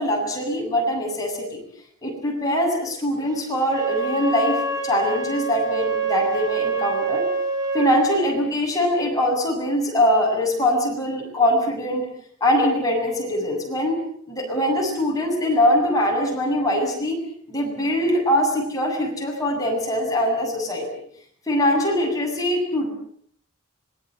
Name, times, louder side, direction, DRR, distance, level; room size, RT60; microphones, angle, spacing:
voice 1, 0.0-1.6 2.0-7.2 7.7-12.1 12.4-14.0 14.3-17.2 17.5-21.0 21.5-22.9, left 1 dB, 15° left, -1 dB, 7.9 m, -22 dB
Wind instrument woodwind instrument, 3.6-8.1, right 4 dB, 20° right, 4.0 m, -26 dB
26.0 x 20.5 x 7.9 m, 0.63 s
head